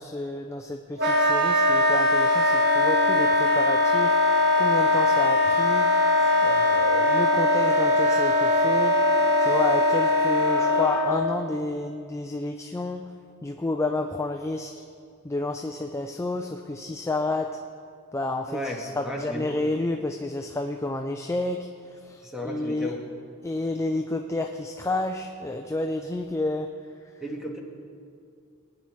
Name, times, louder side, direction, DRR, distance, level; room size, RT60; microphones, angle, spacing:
voice 1, 0.0-5.9 6.2-9.0 9.4-13.0 13.4-14.8 15.2-17.6 18.1-21.7 22.0-22.9 23.4-26.7, left 2 dB, 15° left, 4 dB, 0.4 m, -30 dB
Wind instrument woodwind instrument, 1.0-11.1, left 1 dB, 50° right, 1.3 m, -21 dB
voice 2, 18.5-19.6 22.2-23.0 27.2-27.6, equal, ahead, -2 dB, 1.6 m, -34 dB
22.0 x 9.8 x 3.1 m, 2.3 s
head